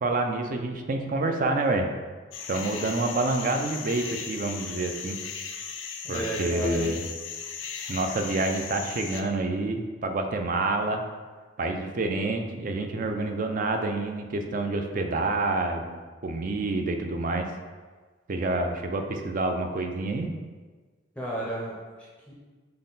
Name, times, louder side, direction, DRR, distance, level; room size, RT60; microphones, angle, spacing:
voice 1, 0.0-1.9 2.5-5.2 6.1-7.1 7.9-11.0 11.6-17.5 18.3-20.3, right 2 dB, 45° right, 5 dB, 0.4 m, -28 dB
sound 1, 2.3-9.2, left 6 dB, 85° left, 0.5 m, -37 dB
voice 2, 6.0-6.9 21.2-22.3, right 1 dB, 5° left, -5 dB, 0.6 m, -33 dB
5.5 x 2.2 x 3.9 m, 1.4 s
head